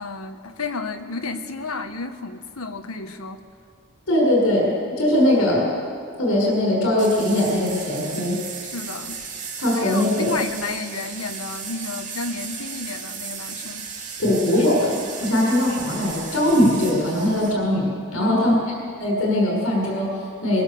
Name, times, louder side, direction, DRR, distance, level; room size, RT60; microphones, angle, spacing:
voice 1, 0.0-3.4 8.6-9.2 9.7-13.9 18.2-18.6, left 3 dB, 90° left, 7 dB, 1.5 m, -32 dB
voice 2, 4.1-5.7 6.2-8.4 9.6-10.3 14.2-18.5 19.0-20.6, left 1 dB, 75° left, -2 dB, 6.6 m, -20 dB
sound 1, 7.0-17.5, right 5 dB, 35° right, 2.6 m, -35 dB
23.0 x 22.5 x 7.1 m, 2.3 s
head